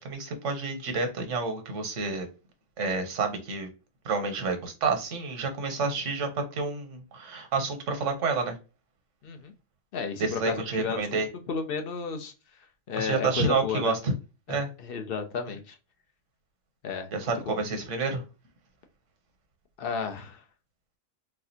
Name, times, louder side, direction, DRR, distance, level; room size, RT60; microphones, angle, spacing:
voice 1, 0.0-2.3 2.8-3.7 4.0-8.6 10.2-11.3 13.0-14.1 14.5-14.7 17.1-18.2, right 4 dB, 75° right, 6 dB, 1.2 m, -29 dB
voice 2, 9.9-12.3 12.9-13.9 14.5-15.8 16.8-17.1 17.5-17.6 19.8-20.4, left 5 dB, 55° left, 6 dB, 0.8 m, -33 dB
4.0 x 2.4 x 2.7 m, 0.30 s
omnidirectional pair, 1.3 m